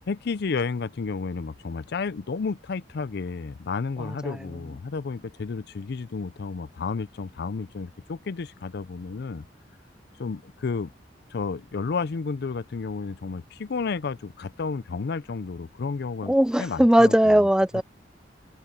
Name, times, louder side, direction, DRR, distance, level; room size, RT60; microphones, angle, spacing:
voice 1, 0.1-9.4 10.2-10.9 11.3-17.4, left 4 dB, 65° left, 0.5 m, -31 dB
voice 2, 4.0-4.4 16.3-17.8, right 1 dB, 5° right, 0.4 m, -19 dB
head